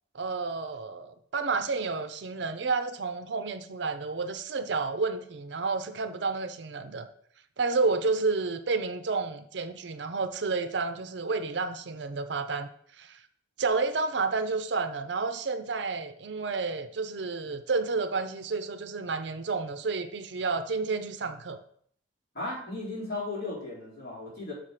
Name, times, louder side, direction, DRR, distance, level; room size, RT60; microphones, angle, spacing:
voice 1, 0.1-7.1 7.6-12.7 13.0-13.2 13.6-21.6, right 4 dB, 65° right, 10 dB, 0.6 m, -30 dB
voice 2, 22.3-24.5, left 2 dB, 50° left, -6 dB, 3.8 m, -36 dB
6.5 x 5.8 x 5.0 m, 0.63 s
head